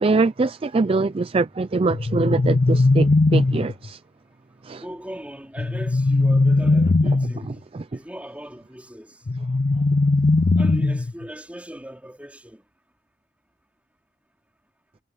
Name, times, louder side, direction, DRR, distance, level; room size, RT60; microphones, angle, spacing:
voice 1, 0.0-4.0 4.6-4.8 7.4-7.8, right 3 dB, 30° right, 0.4 m, -23 dB
sound 1, 1.9-3.9 5.6-7.5 9.3-11.2, left 3 dB, 40° left, 0.5 m, -19 dB
voice 2, 4.8-7.5 7.9-9.2 10.6-12.6, equal, 10° right, 4.4 m, -39 dB
head